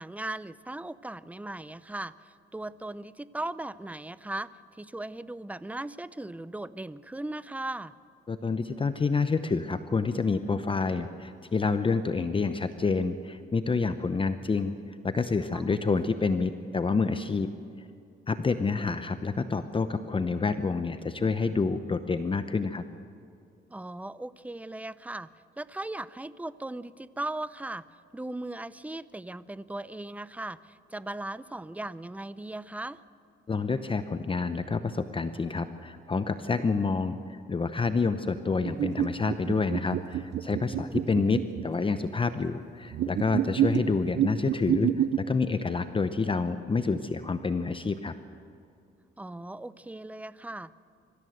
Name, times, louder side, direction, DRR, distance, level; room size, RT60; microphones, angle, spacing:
voice 1, 0.0-7.9 15.5-15.8 23.7-25.3 25.6-27.8 28.1-33.0 40.6-41.1 49.2-50.7, right 2 dB, 5° right, 17 dB, 0.6 m, -38 dB
voice 2, 8.3-14.7 15.0-17.5 18.3-22.8 33.5-48.1, left 4 dB, 25° left, 10 dB, 0.8 m, -28 dB
sound 1, 38.7-41.7 42.9-45.2, right 10 dB, 60° right, 0.7 m, -28 dB
24.0 x 14.5 x 7.9 m, 2.5 s
cardioid pair, 90°, 20 cm